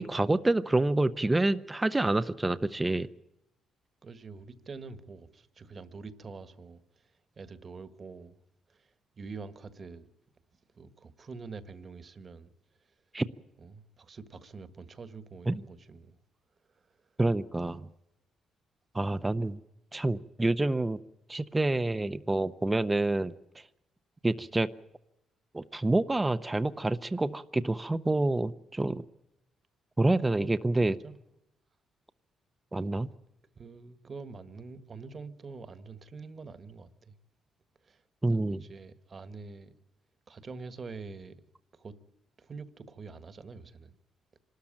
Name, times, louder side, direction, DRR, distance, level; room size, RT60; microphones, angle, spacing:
voice 1, 0.0-3.1 13.1-13.3 15.5-15.6 17.2-17.9 18.9-19.6 19.9-21.0 21.3-23.6 24.2-24.7 25.5-29.0 30.0-31.0 32.7-33.1 38.2-38.6, right 2 dB, 15° right, 0.7 m, -27 dB
voice 2, 4.0-8.4 8.7-10.1 10.7-12.5 13.6-16.2 16.7-17.0 24.3-24.4 30.4-30.5 30.8-31.2 33.5-37.2 37.8-38.0 38.3-39.7 40.3-41.4 41.7-41.9 42.4-43.9, right 4 dB, 40° right, 1.6 m, -46 dB
25.5 x 13.0 x 8.8 m
cardioid pair, 90°, 0 cm